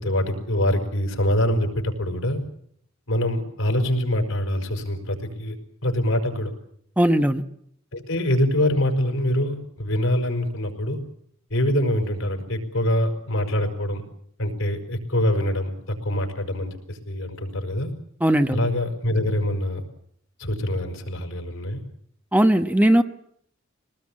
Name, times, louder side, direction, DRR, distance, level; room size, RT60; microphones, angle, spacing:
voice 1, 0.0-2.4 3.1-5.6 5.8-6.5 7.9-11.0 11.5-14.0 14.4-15.7 16.0-17.9 18.5-19.8 20.4-21.8, left 1 dB, 85° left, 4 dB, 5.2 m, -24 dB
voice 2, 7.0-7.4 18.2-18.7 22.3-23.0, right 1 dB, 10° right, 8 dB, 1.0 m, -18 dB
24.0 x 19.0 x 8.7 m, 0.69 s
head